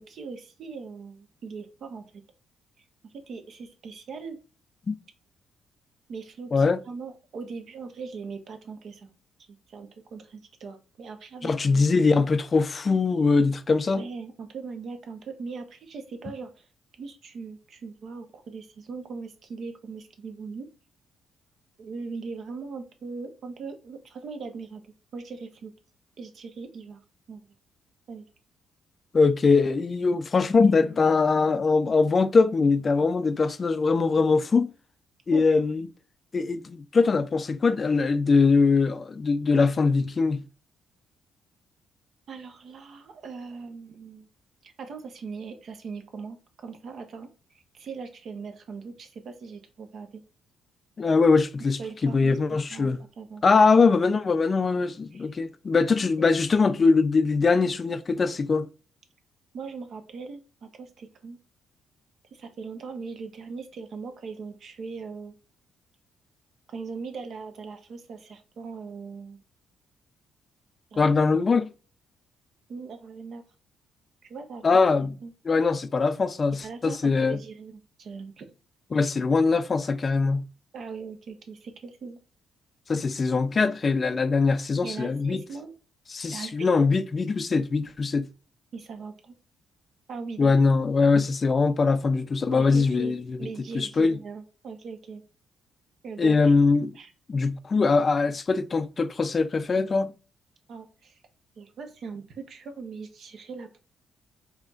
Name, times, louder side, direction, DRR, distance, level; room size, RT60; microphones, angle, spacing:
voice 1, 0.0-2.2 2.8-4.4 6.1-9.1 9.5-11.8 13.9-16.7 17.0-20.7 21.8-24.8 25.1-25.7 26.2-27.0 27.3-27.4 28.1-28.2 35.3-35.6 42.3-44.3 44.6-47.3 47.5-50.2 51.6-52.9 53.2-53.5 55.1-55.3 59.5-61.4 62.3-65.3 66.7-69.4 70.9-71.1 72.7-73.4 74.2-74.6 75.2-75.3 76.6-78.5 79.0-79.1 80.7-82.2 84.8-85.7 86.3-87.0 88.7-89.3 90.1-90.5 92.5-95.2 96.0-96.5 96.9-97.1 100.7-101.2 101.6-103.8, right 4 dB, 60° right, 0.9 m, -40 dB
voice 2, 11.4-14.0 29.1-34.7 35.3-35.9 36.3-40.4 51.0-53.0 53.4-58.7 71.0-71.7 74.6-75.1 75.5-77.4 78.9-80.4 82.9-85.4 86.1-88.3 90.4-93.5 93.7-94.2 96.2-97.0 97.3-100.1, left 4 dB, 35° left, 0.4 m, -22 dB
4.9 x 2.9 x 2.4 m
cardioid pair, 90°, 0 cm